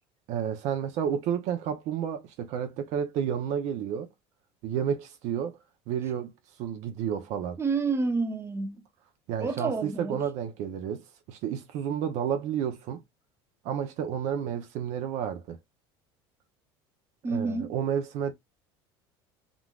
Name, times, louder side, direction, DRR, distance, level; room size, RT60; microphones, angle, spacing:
voice 1, 0.3-4.1 4.6-5.6 5.9-6.3 6.6-7.6 9.3-13.0 13.6-15.6 17.3-18.3, right 8 dB, 65° right, 0.7 m, -31 dB
voice 2, 7.6-8.8 9.4-10.2 17.2-17.7, right 4 dB, 20° right, 1.0 m, -29 dB
3.8 x 2.4 x 2.3 m
supercardioid pair, 90°, 13 cm